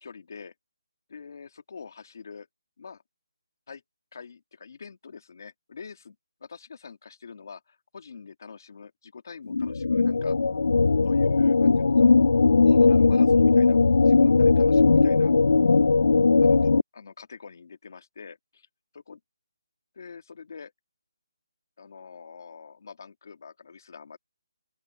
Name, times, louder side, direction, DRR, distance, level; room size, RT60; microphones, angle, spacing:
voice 1, 0.0-0.5 1.1-2.5 2.8-3.0 3.7-3.8 4.1-6.2 6.4-10.4 11.0-12.1 12.6-13.8 14.0-15.3 16.4-18.7 18.9-19.2 19.9-20.7 21.8-24.2, left 5 dB, 45° left, 2.2 m, -44 dB
sound 1, 9.5-16.8, left 4 dB, 75° left, 0.4 m, -19 dB
open air
hypercardioid pair, 170°, 3 cm